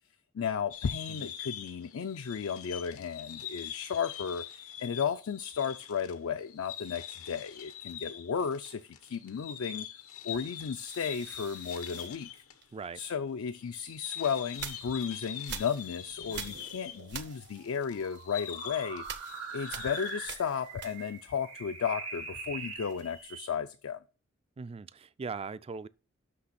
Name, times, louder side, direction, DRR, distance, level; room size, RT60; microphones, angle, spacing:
voice 1, 0.3-9.9 10.2-12.4 12.9-19.0 19.5-24.0, left 7 dB, 65° left, 0.4 m, -34 dB
sound 1, 0.7-12.6 12.8-12.9 13.6-20.3, left 10 dB, 85° left, 0.9 m, -44 dB
sound 2, 10.8-13.1 13.7-21.4 21.7-23.3, right 8 dB, 55° right, 0.7 m, -47 dB
sound 3, 16.1-23.5, right 4 dB, 85° right, 2.0 m, -44 dB
voice 2, 24.6-25.9, right 5 dB, 30° right, 0.3 m, -40 dB
6.2 x 6.0 x 5.8 m
head